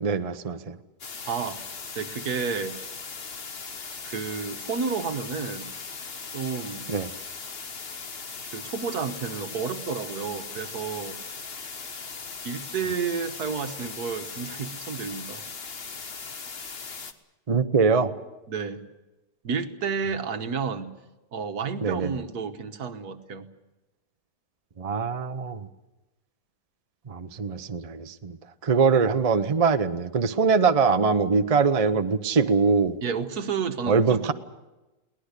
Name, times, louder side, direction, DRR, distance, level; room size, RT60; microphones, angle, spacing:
voice 1, 0.0-0.8 6.9-7.1 17.5-18.1 21.8-22.2 24.8-25.7 27.1-28.4 28.6-33.0 33.9-34.3, right 5 dB, 35° right, 9 dB, 0.6 m, -23 dB
sound 1, 1.0-17.1, left 5 dB, 40° left, 1.3 m, -39 dB
voice 2, 1.2-1.6 2.0-2.8 4.0-5.7 6.3-6.9 8.5-11.2 12.4-15.4 18.5-18.8 19.4-20.9 21.3-23.5 33.0-34.3, right 5 dB, 65° right, 8 dB, 1.7 m, -31 dB
22.5 x 18.5 x 8.3 m, 1.0 s
omnidirectional pair, 1.8 m